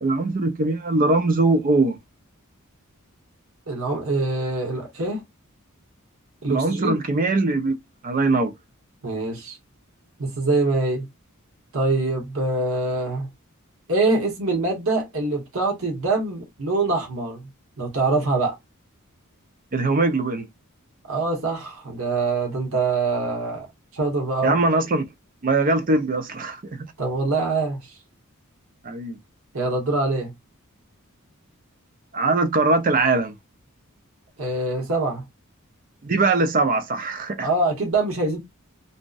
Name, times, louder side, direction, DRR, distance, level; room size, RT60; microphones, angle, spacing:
voice 1, 0.0-2.0 6.5-7.8 8.0-8.5 19.7-20.5 24.4-25.1 25.4-26.9 28.8-29.2 32.1-33.3 36.0-37.5, right 3 dB, 40° right, 0.5 m, -21 dB
voice 2, 3.7-5.2 6.4-7.0 9.0-9.6 10.2-11.1 11.7-13.3 13.9-17.5 17.8-18.5 21.1-23.7 23.9-24.6 27.0-27.8 29.5-30.3 34.4-35.2 37.4-38.4, right 3 dB, 65° right, 0.9 m, -24 dB
2.6 x 2.1 x 2.3 m
head